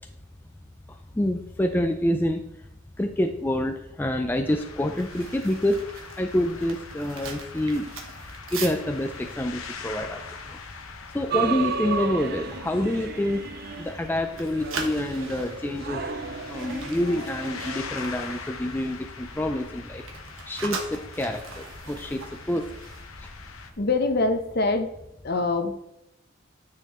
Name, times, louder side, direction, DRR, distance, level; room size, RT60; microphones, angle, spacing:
voice 1, 0.9-2.4 3.0-7.9 8.5-10.2 10.5-10.6 11.1-13.4 13.8-16.1 16.5-20.0 20.5-22.8 23.2-23.3, left 1 dB, 10° left, 5 dB, 0.4 m, -27 dB
sound 1, 4.5-23.7, left 5 dB, 85° left, 0.9 m, -42 dB
sound 2, 4.9-11.0 11.3-11.6 12.0-12.3 12.8-14.0 14.3-19.0 19.3-23.8 24.1-24.3, right 4 dB, 80° right, 1.3 m, -41 dB
sound 3, 11.3-18.3, right 5 dB, 50° right, 0.5 m, -34 dB
voice 2, 23.8-24.9 25.2-25.7, left 3 dB, 50° left, 6 dB, 0.8 m, -24 dB
9.6 x 6.5 x 3.1 m, 0.84 s
head